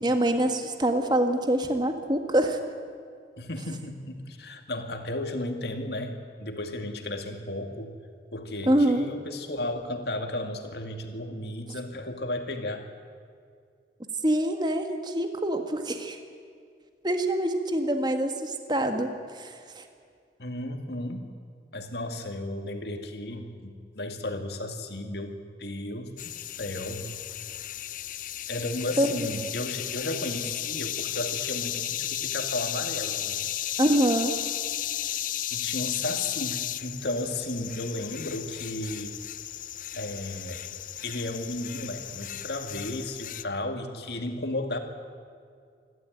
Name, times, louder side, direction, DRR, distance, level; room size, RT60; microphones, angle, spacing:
voice 1, 0.0-2.6 8.6-9.0 14.2-16.2 17.0-19.8 29.0-29.1 33.8-34.3, right 1 dB, 25° right, 6 dB, 1.6 m, -25 dB
voice 2, 3.4-7.9 8.3-12.9 20.4-21.3 21.7-26.3 26.6-27.2 28.5-33.4 35.5-39.1 39.9-40.6 41.0-44.8, left 1 dB, 70° left, 5 dB, 2.2 m, -34 dB
sound 1, 26.2-43.4, left 12 dB, 50° left, 0.6 m, -34 dB
27.5 x 12.5 x 9.3 m, 2.2 s
head